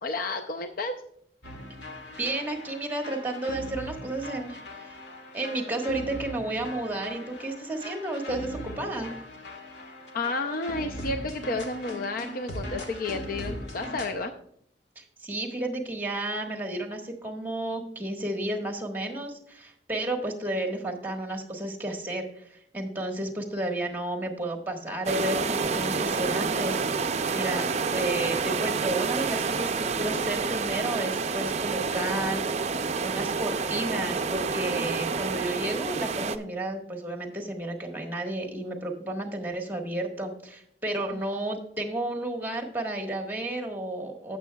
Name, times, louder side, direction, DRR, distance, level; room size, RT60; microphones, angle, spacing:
voice 1, 0.0-1.0 10.1-14.3 41.1-41.2, left 3 dB, 55° left, 7 dB, 0.6 m, -31 dB
sound 1, 1.4-14.1, equal, 85° left, 1.7 m, -40 dB
voice 2, 2.2-4.6 4.8-5.0 5.3-9.1 14.9-32.4 32.7-44.4, right 1 dB, 10° right, 3 dB, 1.5 m, -32 dB
sound 2, 25.1-36.4, right 5 dB, 40° right, 0.5 m, -28 dB
16.5 x 7.5 x 2.3 m, 0.69 s
head